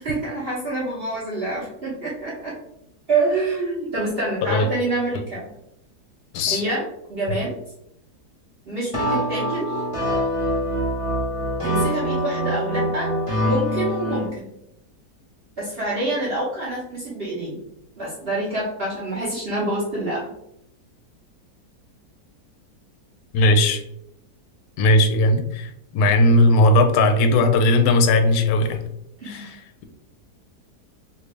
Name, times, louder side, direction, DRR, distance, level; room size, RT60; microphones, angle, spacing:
voice 1, 0.0-2.5 3.1-5.5 6.5-6.8 7.1-7.5 8.7-9.8 11.6-13.1 13.4-14.5 15.6-17.6 18.0-20.2 29.2-29.5, right 2 dB, 45° right, -7 dB, 0.9 m, -26 dB
sound 1, 8.9-14.3, equal, 35° left, 0.5 m, -24 dB
voice 2, 23.3-23.8 24.8-28.8 29.2-29.8, left 1 dB, 75° left, 6 dB, 1.0 m, -18 dB
3.3 x 2.6 x 3.2 m, 0.79 s
omnidirectional pair, 1.8 m